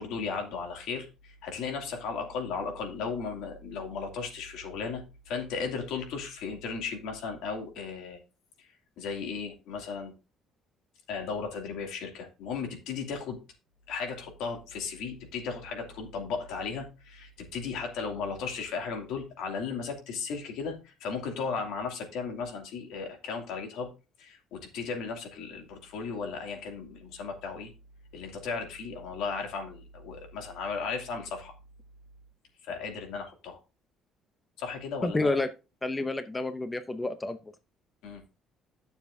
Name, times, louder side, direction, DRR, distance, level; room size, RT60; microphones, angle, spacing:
voice 1, 0.0-8.2 8.6-8.7 9.0-10.1 11.1-13.4 13.9-23.9 24.2-27.7 28.1-31.5 32.6-33.6 34.6-35.4 38.0-38.2, left 5 dB, 80° left, 3 dB, 2.5 m, -35 dB
voice 2, 35.0-35.5 35.8-37.4, left 2 dB, 15° left, 10 dB, 0.6 m, -29 dB
12.0 x 7.0 x 2.7 m, 0.29 s
cardioid pair, 155°, 0 cm